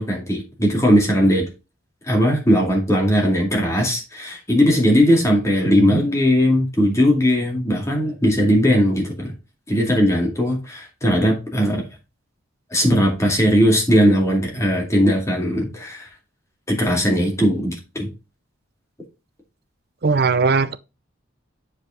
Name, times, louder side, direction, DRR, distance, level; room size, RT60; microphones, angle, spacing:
voice 1, 0.0-1.5 2.1-9.3 9.7-11.8 12.7-16.1 16.7-18.1, equal, 15° left, 2.2 m, -18 dB
voice 2, 20.0-20.8, right 4 dB, 50° right, 0.6 m, -19 dB
7.9 x 5.0 x 3.7 m
head